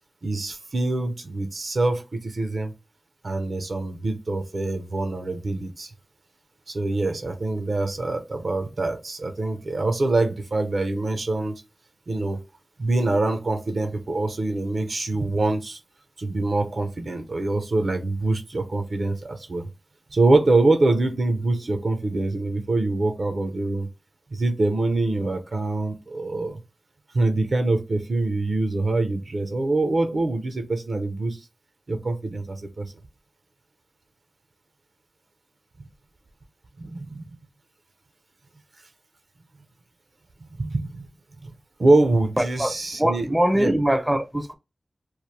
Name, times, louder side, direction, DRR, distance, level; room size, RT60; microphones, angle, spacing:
voice 1, 0.2-2.7 3.2-5.9 6.7-11.6 12.1-12.4 12.8-15.8 16.2-19.7 20.1-23.9 24.3-26.6 27.1-31.4 31.9-32.9 35.8-35.9 36.8-37.4 40.4-41.1 41.4-43.3 43.5-43.7, right 2 dB, 65° right, 0.5 m, -24 dB
voice 2, 42.4-42.7 43.0-44.5, right 1 dB, 10° right, 0.5 m, -22 dB
3.0 x 2.1 x 3.1 m
cardioid pair, 50°, 0 cm